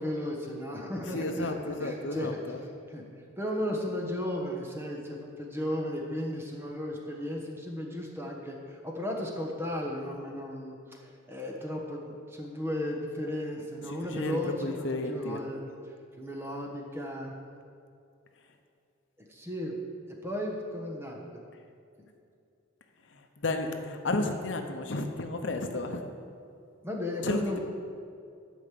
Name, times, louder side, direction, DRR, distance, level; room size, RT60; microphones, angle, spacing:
voice 1, 0.0-2.4 2.9-3.0 3.4-15.6 16.2-17.3 19.3-19.8 20.2-21.4 26.8-27.6, left 1 dB, 10° right, 0 dB, 1.3 m, -35 dB
voice 2, 1.1-2.6 13.9-15.4 23.1-26.0 27.2-27.6, left 2 dB, 65° left, 5 dB, 0.8 m, -32 dB
11.5 x 5.2 x 7.7 m, 2.5 s
head